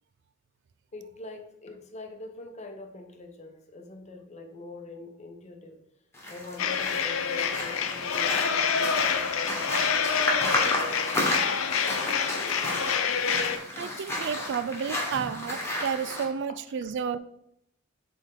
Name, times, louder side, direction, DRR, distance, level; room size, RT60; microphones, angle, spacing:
voice 1, 0.9-5.8 6.3-11.5, left 3 dB, 35° left, 4 dB, 0.8 m, -44 dB
sound 1, 6.1-16.2, left 1 dB, 15° left, 1.3 m, -32 dB
sound 2, 6.6-13.6, left 7 dB, 75° left, 0.5 m, -27 dB
voice 2, 13.7-17.2, right 6 dB, 60° right, 13 dB, 0.3 m, -31 dB
7.5 x 3.5 x 3.7 m, 0.74 s
head